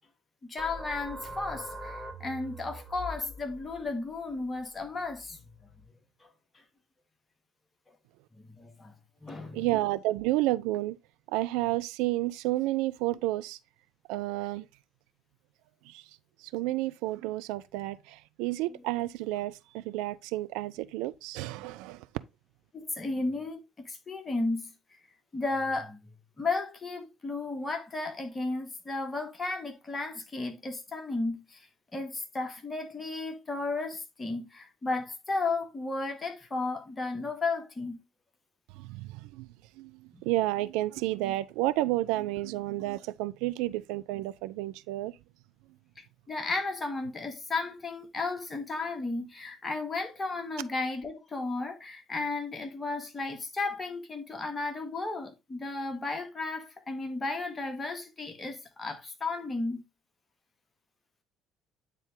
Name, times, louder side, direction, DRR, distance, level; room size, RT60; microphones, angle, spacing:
voice 1, 0.4-5.4 6.2-6.3 8.3-8.9 9.2-9.6 22.7-23.6 23.9-24.7 25.3-31.7 31.9-38.0 40.1-40.2 46.3-59.8, left 3 dB, 25° left, 1.9 m, -34 dB
sound 1, 0.6-5.8, equal, 5° right, 1.7 m, -44 dB
voice 2, 9.5-11.0 11.3-13.6 14.1-14.7 15.8-16.0 16.4-22.1 38.7-45.2, right 17 dB, 65° right, 0.4 m, -31 dB
9.0 x 3.9 x 3.6 m
figure-of-eight pair, 50°, 0 cm